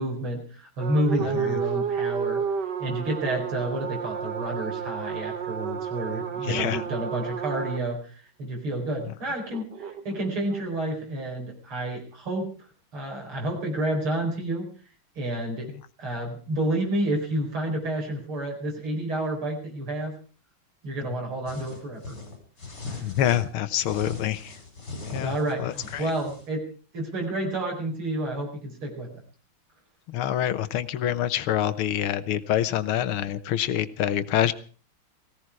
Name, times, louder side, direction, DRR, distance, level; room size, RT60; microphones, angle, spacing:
voice 1, 0.0-2.4 2.8-12.5 12.9-14.7 15.2-15.7 16.0-20.1 20.8-22.2 22.8-23.1 25.2-26.7 26.9-29.2, right 1 dB, 85° right, 0 dB, 5.6 m, -30 dB
sound 1, 0.8-7.8 9.5-10.6, right 7 dB, 55° right, 1.9 m, -31 dB
voice 2, 6.4-6.8 23.0-24.5 25.1-26.1 30.1-34.5, left 11 dB, 90° left, 13 dB, 1.9 m, -26 dB
sound 2, 21.5-23.5 23.8-26.5, left 3 dB, 50° left, 5.6 m, -39 dB
18.5 x 16.5 x 4.8 m, 0.39 s
omnidirectional pair, 2.3 m